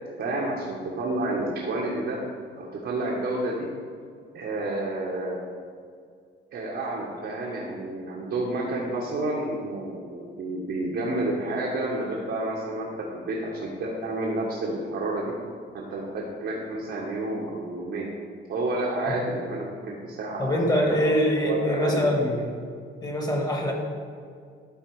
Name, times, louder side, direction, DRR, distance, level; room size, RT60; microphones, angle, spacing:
voice 1, 0.2-2.2 2.6-3.6 4.3-5.4 6.5-15.3 15.7-18.1 18.5-21.2 21.4-22.1, right 2 dB, 70° right, -4 dB, 1.4 m, -30 dB
voice 2, 20.4-22.5 23.0-23.7, equal, 20° left, 1 dB, 1.6 m, -24 dB
12.0 x 4.0 x 4.8 m, 2.2 s
cardioid pair, 90°, 20 cm